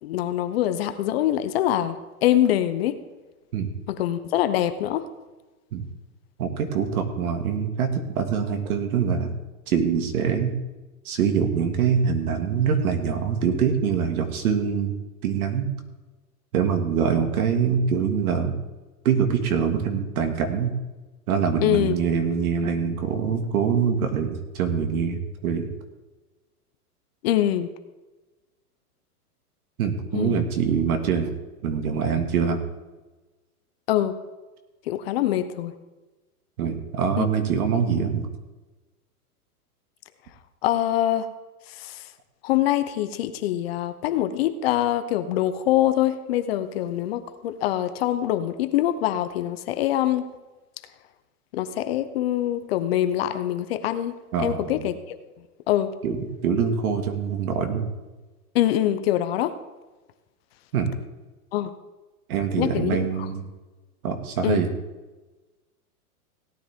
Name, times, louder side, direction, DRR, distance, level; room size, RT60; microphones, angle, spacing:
voice 1, 0.0-3.0 3.9-5.1 21.6-22.0 27.2-27.7 30.1-30.4 33.9-34.2 34.9-35.7 37.2-37.3 40.6-41.3 41.7-42.1 42.4-50.3 51.5-55.2 55.7-55.9 58.5-59.6 61.5-61.7 62.6-63.0 64.4-64.6, left 12 dB, 40° left, 10 dB, 0.7 m, -24 dB
voice 2, 6.4-9.3 9.7-10.6 11.1-15.0 15.2-15.7 16.5-18.6 19.0-20.7 21.3-25.7 29.8-31.3 31.6-32.6 36.6-38.3 54.3-54.9 56.0-56.2 56.4-58.0 60.7-60.9 62.3-63.4 64.0-64.7, right 7 dB, 65° right, 5 dB, 2.1 m, -24 dB
17.0 x 9.9 x 3.6 m, 1.2 s
hypercardioid pair, 150°, 46 cm